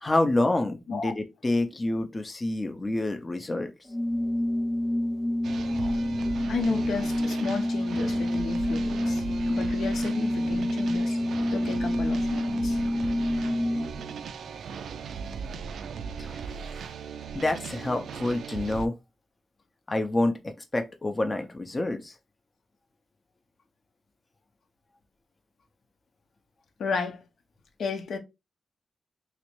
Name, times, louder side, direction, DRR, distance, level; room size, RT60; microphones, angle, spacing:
voice 1, 0.0-3.7 16.2-16.5 16.7-16.8 17.3-18.9 19.9-22.1, left 2 dB, 20° left, 0.4 m, -28 dB
Organ, 3.9-14.1, left 1 dB, 5° right, 0.9 m, -28 dB
sound 1, 5.4-18.9, right 6 dB, 85° right, 0.3 m, -38 dB
voice 2, 6.5-11.2 11.5-12.8 26.8-27.2 27.8-28.2, left 5 dB, 80° left, 0.7 m, -33 dB
3.2 x 2.9 x 3.0 m
wide cardioid pair, 135°, 0 cm